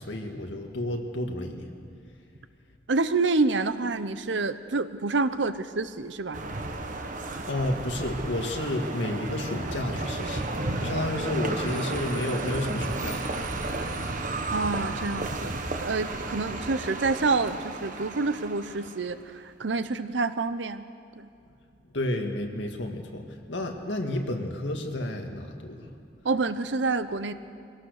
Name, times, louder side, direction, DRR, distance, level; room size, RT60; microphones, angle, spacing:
voice 1, 0.0-1.7 7.5-14.0 21.9-26.3, left 1 dB, 75° left, 3 dB, 2.0 m, -31 dB
voice 2, 2.9-6.4 14.5-15.6 15.8-20.8 21.2-21.3 26.2-27.3, right 3 dB, 70° right, 12 dB, 0.8 m, -27 dB
sound 1, 6.3-19.2, right 2 dB, 45° right, 1.3 m, -33 dB
22.5 x 17.5 x 6.6 m, 2.3 s
head